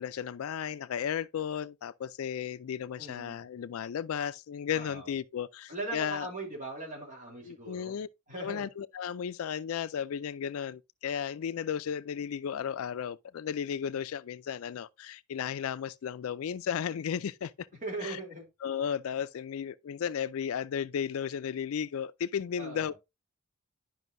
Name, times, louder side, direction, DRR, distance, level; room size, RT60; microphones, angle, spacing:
voice 1, 0.0-6.3 7.4-8.1 8.4-17.7 18.0-18.2 18.6-22.9, left 8 dB, 70° left, 0.4 m, -34 dB
voice 2, 3.0-3.4 4.7-5.1 5.7-8.0 8.3-8.7 17.8-18.5 22.6-22.9, right 2 dB, 40° right, 3.1 m, -40 dB
11.0 x 5.3 x 2.6 m
head